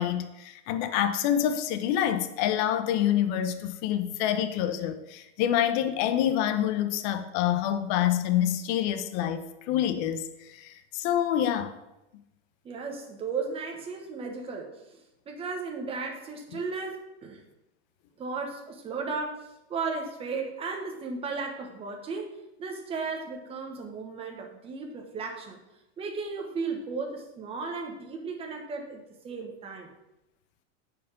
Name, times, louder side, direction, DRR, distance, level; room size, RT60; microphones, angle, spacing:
voice 1, 0.0-11.7, left 10 dB, 40° left, 0.7 m, -27 dB
voice 2, 12.6-15.0 15.3-17.4 18.2-25.6 26.0-29.9, right 4 dB, 15° right, 1.1 m, -35 dB
8.8 x 4.8 x 5.2 m
supercardioid pair, 160°, 36 cm